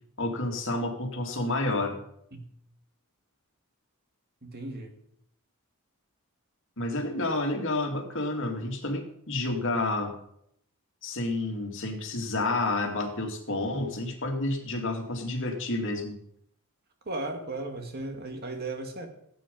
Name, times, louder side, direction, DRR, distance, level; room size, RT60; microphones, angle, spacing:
voice 1, 0.2-2.0 6.8-10.1 11.0-16.2, left 2 dB, 60° left, 3 dB, 2.5 m, -30 dB
voice 2, 4.4-4.9 17.1-19.1, right 2 dB, 45° right, 5 dB, 2.2 m, -36 dB
17.0 x 9.0 x 5.3 m, 0.72 s
head